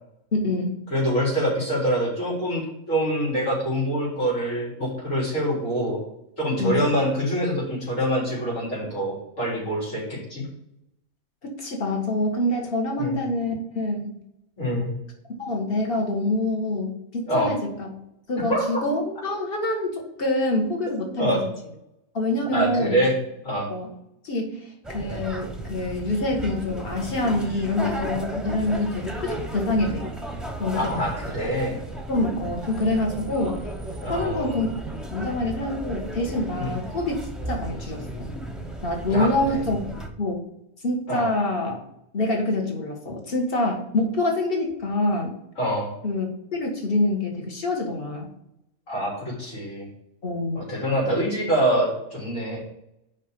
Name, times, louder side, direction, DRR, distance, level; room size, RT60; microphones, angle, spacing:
voice 1, 0.3-0.7 6.6-6.9 11.6-14.1 15.4-17.9 18.3-21.3 22.1-23.0 23.7-23.9 24.2-30.0 30.6-30.9 32.1-33.6 34.1-34.7 35.1-37.1 37.5-38.3 38.8-39.8 40.2-40.4 40.8-41.8 42.1-45.3 46.0-48.3 50.2-50.6, left 2 dB, 45° left, 1 dB, 1.9 m, -26 dB
voice 2, 0.9-6.0 6.4-10.5 13.0-13.2 14.6-14.9 17.3-17.6 18.5-18.6 21.2-21.4 22.5-23.1 23.4-23.7 30.7-31.8 34.0-34.6 36.6-36.8 39.1-39.6 41.1-41.3 45.6-45.9 48.9-49.9 50.5-52.6, equal, 80° left, -6 dB, 4.5 m, -25 dB
sound 1, 24.8-40.1, right 1 dB, ahead, 0.9 m, -34 dB
6.5 x 5.5 x 6.9 m, 0.81 s
omnidirectional pair, 1.3 m